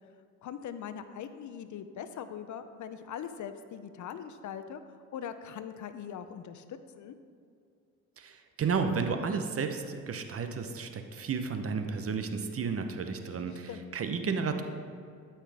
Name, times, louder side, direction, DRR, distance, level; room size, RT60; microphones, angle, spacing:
voice 1, 0.4-4.8 5.1-7.1 13.7-14.0, left 8 dB, 50° left, 10 dB, 0.6 m, -41 dB
voice 2, 8.2-14.6, right 5 dB, 35° right, 7 dB, 0.8 m, -32 dB
13.0 x 5.9 x 3.5 m, 2.3 s
hypercardioid pair, 65°, 39 cm